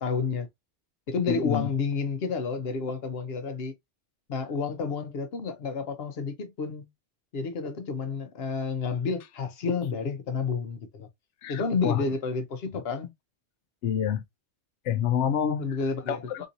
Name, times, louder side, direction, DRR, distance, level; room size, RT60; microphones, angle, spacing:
voice 1, 0.0-0.5 1.1-3.7 4.3-6.9 7.3-11.1 11.5-13.1 15.6-16.5, left 4 dB, 60° left, 1.0 m, -30 dB
voice 2, 1.3-1.7 11.4-12.0 13.8-14.2 14.9-15.7 16.1-16.5, left 9 dB, 85° left, 0.9 m, -27 dB
3.7 x 2.7 x 2.5 m
omnidirectional pair, 1.2 m